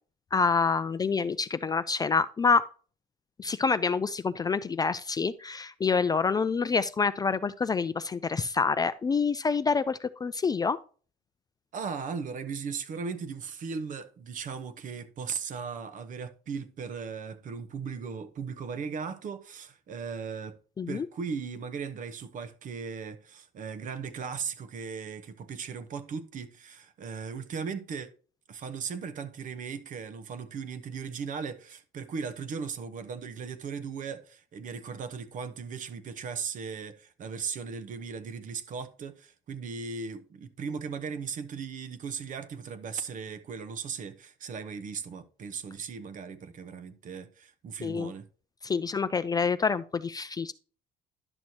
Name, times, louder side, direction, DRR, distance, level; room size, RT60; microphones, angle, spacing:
voice 1, 0.3-2.6 3.4-10.8 20.8-21.1 47.8-48.1 48.6-50.5, left 5 dB, 25° left, 0.3 m, -27 dB
voice 2, 11.7-20.6 20.9-28.1 28.5-48.3, right 6 dB, 50° right, 0.9 m, -37 dB
11.0 x 6.1 x 2.8 m
cardioid pair, 110°, 17 cm